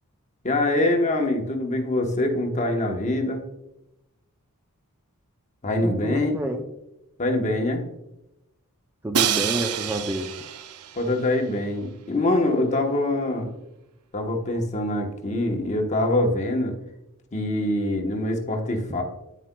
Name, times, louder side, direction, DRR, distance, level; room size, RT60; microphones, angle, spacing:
voice 1, 0.4-3.4 5.6-6.4 7.2-7.8 10.9-13.5 14.1-16.8 17.3-19.0, left 1 dB, 30° left, 3 dB, 1.0 m, -24 dB
voice 2, 5.8-6.6 9.0-10.3 18.9-19.0, right 1 dB, 10° right, 5 dB, 0.4 m, -29 dB
Crash cymbal, 9.1-11.2, right 9 dB, 80° right, 0.5 m, -27 dB
9.2 x 7.6 x 2.2 m, 0.90 s
head